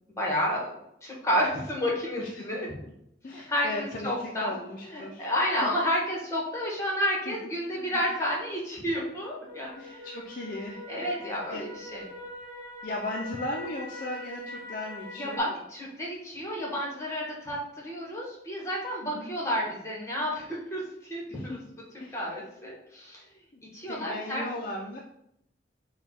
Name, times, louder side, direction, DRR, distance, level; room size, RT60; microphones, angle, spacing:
voice 1, 0.1-0.7 1.0-2.7 3.3-4.5 4.9-10.1 10.9-12.0 15.2-20.8 21.1-21.6 22.1-23.3 23.7-24.4, equal, 15° left, -3 dB, 1.3 m, -31 dB
voice 2, 2.2-2.9 3.2-5.7 7.3-7.4 7.9-8.0 9.8-11.6 12.8-15.6 19.0-19.4 21.3-21.6 21.9-22.3 23.5-25.0, left 1 dB, 50° left, -1 dB, 0.5 m, -38 dB
sound 1, 9.5-15.4, left 1 dB, 45° right, 1.2 m, -42 dB
5.2 x 2.3 x 4.2 m, 0.77 s
head